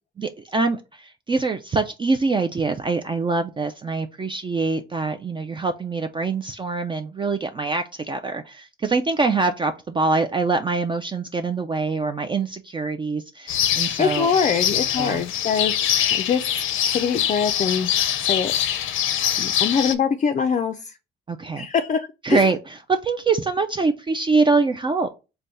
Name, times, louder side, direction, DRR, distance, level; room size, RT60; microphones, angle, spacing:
voice 1, 0.2-14.3 15.0-15.2 21.3-21.7 22.2-25.1, right 4 dB, 25° right, 0.4 m, -24 dB
sound 1, 13.5-19.9, left 10 dB, 85° left, 0.5 m, -24 dB
voice 2, 14.0-16.6 16.9-17.9 18.2-18.9 19.4-20.9 21.6-22.5, left 6 dB, 40° left, 0.4 m, -24 dB
3.4 x 2.2 x 3.9 m
cardioid pair, 90°, 20 cm